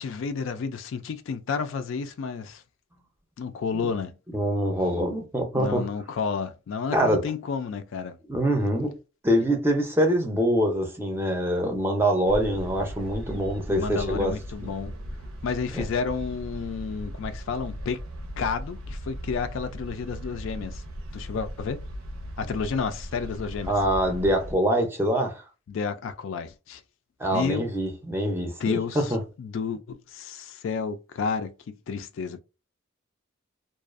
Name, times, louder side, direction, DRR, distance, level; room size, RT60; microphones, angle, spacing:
voice 1, 0.0-2.6 3.4-4.2 5.5-8.2 13.7-15.0 15.4-18.0 18.4-20.8 21.1-21.8 22.4-23.7 25.7-26.8 27.3-27.7 28.6-32.4, left 5 dB, 65° left, 0.3 m, -31 dB
voice 2, 4.3-5.8 6.9-7.2 8.3-8.9 9.2-14.3 14.6-14.7 23.7-25.4 27.2-29.2, equal, 10° right, 0.5 m, -24 dB
sound 1, 12.3-24.5, equal, 85° right, 0.7 m, -38 dB
2.4 x 2.3 x 2.4 m
head